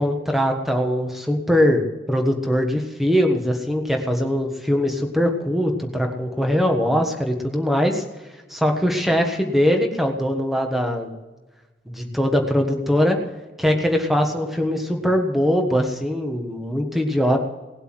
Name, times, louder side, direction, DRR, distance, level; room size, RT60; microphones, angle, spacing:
voice 1, 0.0-8.0 8.5-11.2 11.9-13.2 13.6-17.4, equal, ahead, 3 dB, 1.4 m, -21 dB
18.5 x 8.0 x 7.7 m, 1.2 s
head